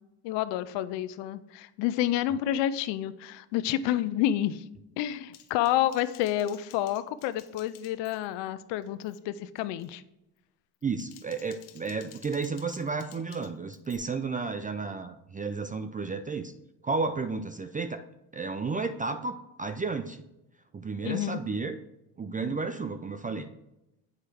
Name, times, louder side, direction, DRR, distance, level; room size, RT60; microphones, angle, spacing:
voice 1, 0.2-4.6 5.0-10.0 21.0-21.4, left 12 dB, 70° left, 13 dB, 0.6 m, -29 dB
Typing, 5.3-8.5 8.8-9.2 9.6-9.9 10.7-14.0, left 12 dB, 85° left, 0.9 m, -54 dB
voice 2, 10.8-16.5 16.8-18.0 18.3-20.2 20.7-21.8 22.2-23.5, right 4 dB, 20° right, 9 dB, 0.4 m, -32 dB
8.2 x 4.8 x 4.4 m, 0.90 s
supercardioid pair, 90°, 45 cm